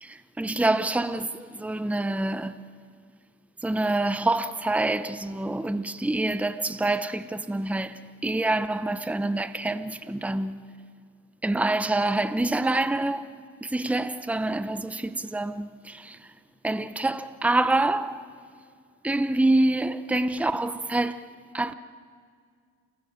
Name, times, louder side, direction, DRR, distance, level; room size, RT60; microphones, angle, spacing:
voice 1, 0.0-2.6 3.6-10.6 11.4-13.3 13.6-16.2 16.6-18.2 19.0-21.2 21.5-21.7, right 2 dB, 5° right, 0.9 m, -26 dB
29.0 x 23.0 x 6.7 m
cardioid pair, 90°, 30 cm